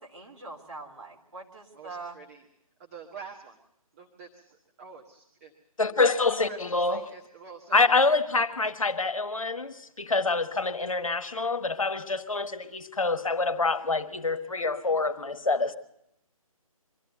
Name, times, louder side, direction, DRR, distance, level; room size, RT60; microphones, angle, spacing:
voice 1, 0.0-2.2, right 3 dB, 50° right, 0 dB, 3.7 m, -43 dB
voice 2, 1.7-2.4 2.8-3.6 3.9-5.5 6.5-7.9, right 5 dB, 25° right, 1 dB, 1.4 m, -46 dB
voice 3, 5.8-7.1 7.7-15.8, left 3 dB, 65° left, 10 dB, 1.5 m, -26 dB
23.5 x 14.0 x 8.0 m, 0.78 s
figure-of-eight pair, 145°, 19 cm